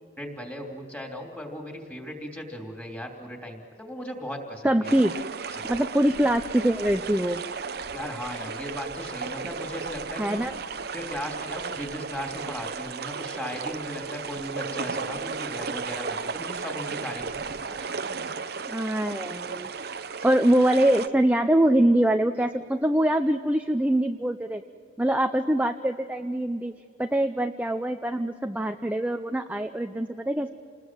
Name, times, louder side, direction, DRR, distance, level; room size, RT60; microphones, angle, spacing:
voice 1, 0.2-4.9 5.5-5.7 7.9-10.4 10.9-17.3 17.5-18.2, equal, 10° left, 1 dB, 3.2 m, -37 dB
voice 2, 4.6-5.1 5.6-7.4 10.2-10.5 18.7-19.7 20.0-24.6 25.0-26.7 27.0-30.5, right 1 dB, 10° right, 6 dB, 0.6 m, -24 dB
sound 1, 4.8-21.1, right 5 dB, 55° right, 0.9 m, -35 dB
28.0 x 20.5 x 7.7 m, 2.3 s
head